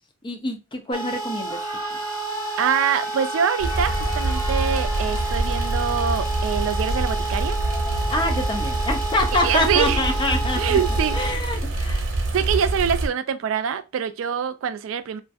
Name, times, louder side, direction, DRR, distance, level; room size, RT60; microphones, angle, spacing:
voice 1, 0.2-1.6 8.1-10.8 11.1-12.1, left 2 dB, 25° left, 0.5 m, -26 dB
sound 1, 0.9-11.3, right 2 dB, 45° left, 0.9 m, -31 dB
sound 2, 1.3-6.5 7.5-8.7 9.7-10.1, left 1 dB, 85° left, 0.9 m, -38 dB
voice 2, 2.6-7.6 9.4-10.0 10.6-11.3 12.3-15.2, right 7 dB, 90° right, 0.3 m, -24 dB
sound 3, 3.6-13.1, right 2 dB, 70° right, 0.7 m, -25 dB
2.5 x 2.3 x 2.5 m
head